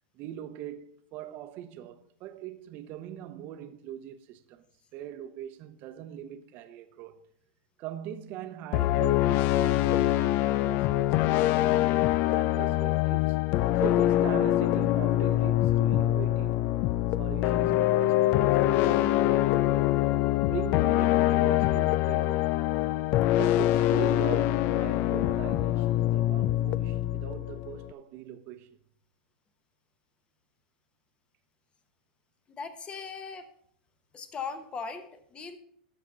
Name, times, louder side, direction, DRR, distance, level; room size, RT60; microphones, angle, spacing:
voice 1, 0.1-4.7 4.9-7.2 7.8-12.0 12.3-13.4 13.8-16.6 17.2-19.9 20.5-22.5 23.4-28.8, right 11 dB, 45° right, 0.8 m, -41 dB
sound 1, 8.7-27.9, left 15 dB, 45° left, 0.3 m, -24 dB
voice 2, 32.6-33.4 34.1-35.6, left 5 dB, 25° left, 1.1 m, -38 dB
13.5 x 5.9 x 3.9 m
hypercardioid pair, 120°, 5 cm